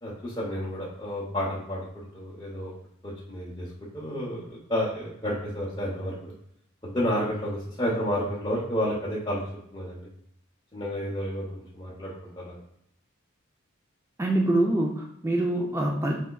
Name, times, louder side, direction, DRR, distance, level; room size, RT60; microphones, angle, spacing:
voice 1, 0.0-2.7 3.0-6.3 6.8-9.4 9.7-10.1 10.7-12.6, equal, 20° left, -7 dB, 0.8 m, -31 dB
voice 2, 14.2-16.1, right 1 dB, 10° right, 0 dB, 0.4 m, -25 dB
5.3 x 3.5 x 2.2 m, 0.72 s
head